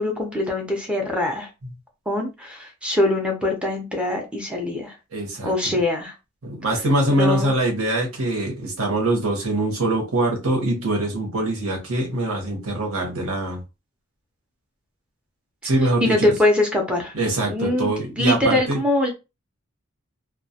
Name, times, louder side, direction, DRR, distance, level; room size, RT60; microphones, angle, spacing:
voice 1, 0.0-1.5 2.1-4.9 5.4-6.1 7.1-7.5 16.0-17.1 17.5-19.1, left 1 dB, 5° right, 2 dB, 0.4 m, -23 dB
voice 2, 5.1-5.8 6.4-13.6 15.6-16.3 17.1-18.8, right 1 dB, 80° right, 1 dB, 0.9 m, -23 dB
2.2 x 2.1 x 2.7 m, 0.26 s
head